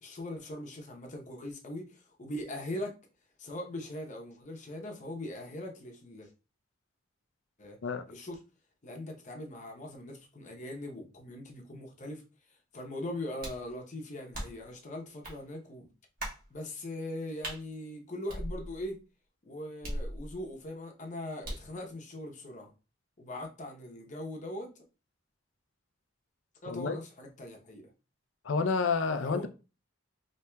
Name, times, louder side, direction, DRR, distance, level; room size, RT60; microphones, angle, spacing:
voice 1, 0.0-3.0 3.4-6.3 7.6-7.8 8.1-8.4 8.8-12.2 12.5-15.9 16.5-19.0 19.5-22.7 23.2-24.7 26.6-27.9 29.2-29.5, left 1 dB, 40° left, 0.7 m, -41 dB
sound 1, 13.4-13.7 14.3-14.7 15.2-15.4 16.2-16.5 17.4-17.6 18.3-18.9 19.8-20.5 21.4-21.8, right 1 dB, 45° right, 1.3 m, -39 dB
voice 2, 26.7-27.0 28.4-29.5, left 4 dB, 80° left, 0.5 m, -29 dB
4.4 x 2.9 x 2.2 m
head